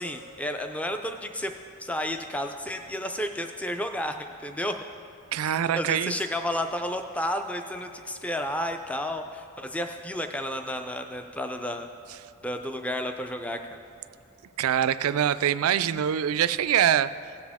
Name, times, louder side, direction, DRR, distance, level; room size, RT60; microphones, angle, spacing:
voice 1, 0.0-1.5 1.8-4.8 5.4-11.9 12.4-13.8, left 1 dB, 5° left, 6 dB, 0.4 m, -32 dB
voice 2, 5.3-6.1 14.6-17.1, right 9 dB, 75° right, 14 dB, 0.3 m, -24 dB
17.5 x 7.3 x 3.5 m, 2.5 s
head